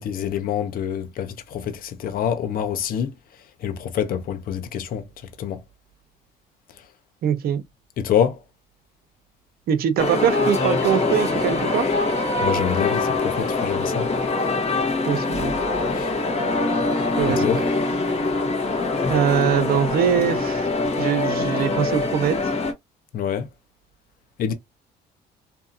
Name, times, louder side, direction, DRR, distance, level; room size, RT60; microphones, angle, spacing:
voice 1, 0.0-3.1 3.6-5.0 5.4-5.6 8.0-8.4 12.4-14.1 15.9-16.1 17.4-17.6 23.1-23.5 24.4-24.5, left 9 dB, 60° left, 0.7 m, -26 dB
voice 2, 7.2-7.6 9.7-11.8 15.1-15.5 17.2-17.6 19.1-20.7 21.0-22.4, right 8 dB, 65° right, 0.7 m, -22 dB
sound 1, 10.0-22.7, left 3 dB, 40° left, 1.1 m, -23 dB
2.7 x 2.6 x 2.5 m
cardioid pair, 110°, 17 cm